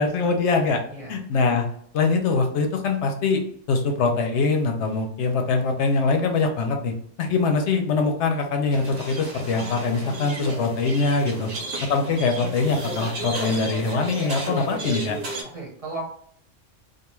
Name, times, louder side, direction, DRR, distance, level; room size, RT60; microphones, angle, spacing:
voice 1, 0.0-0.8 1.1-1.7 1.9-3.4 3.7-6.9 7.2-11.5 11.9-15.2, left 4 dB, 70° left, 4 dB, 0.8 m, -23 dB
sound 1, 8.7-15.4, right 2 dB, 80° right, 1.0 m, -33 dB
voice 2, 15.5-16.0, right 2 dB, 35° right, -4 dB, 0.8 m, -36 dB
2.4 x 2.3 x 3.0 m, 0.63 s
omnidirectional pair, 1.3 m